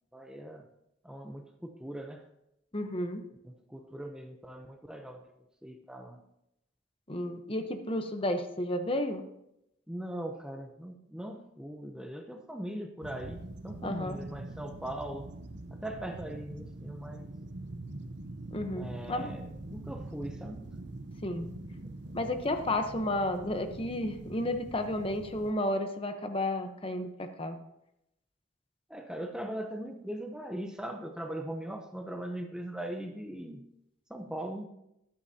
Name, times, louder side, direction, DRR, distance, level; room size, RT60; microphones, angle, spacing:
voice 1, 0.1-0.7 1.0-2.2 3.4-5.3 5.6-6.2 9.9-13.4 13.6-15.3 15.7-17.3 18.8-20.7 22.0-22.2 28.9-33.6 34.1-34.7, right 1 dB, 5° right, 4 dB, 0.7 m, -40 dB
voice 2, 2.7-3.2 7.1-9.2 13.8-14.2 18.5-19.3 21.2-21.5 22.1-27.6, left 1 dB, 30° left, 7 dB, 0.9 m, -32 dB
sound 1, 13.0-25.5, right 2 dB, 65° right, 0.8 m, -44 dB
13.5 x 11.5 x 2.8 m, 0.82 s
head